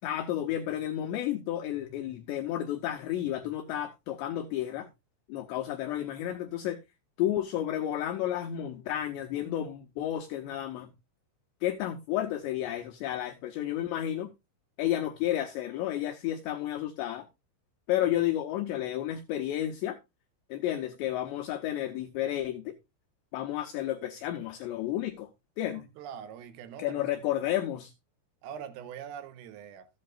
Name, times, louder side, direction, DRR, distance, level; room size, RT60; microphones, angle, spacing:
voice 1, 0.0-4.9 5.3-6.8 7.2-10.9 11.6-14.3 14.8-17.3 17.9-20.0 20.5-22.8 23.3-25.3 25.6-25.8 26.8-27.9, left 12 dB, 90° left, 2.5 m, -31 dB
voice 2, 25.7-27.6 28.4-29.9, right 8 dB, 85° right, 3.6 m, -44 dB
14.0 x 8.6 x 2.4 m
omnidirectional pair, 5.9 m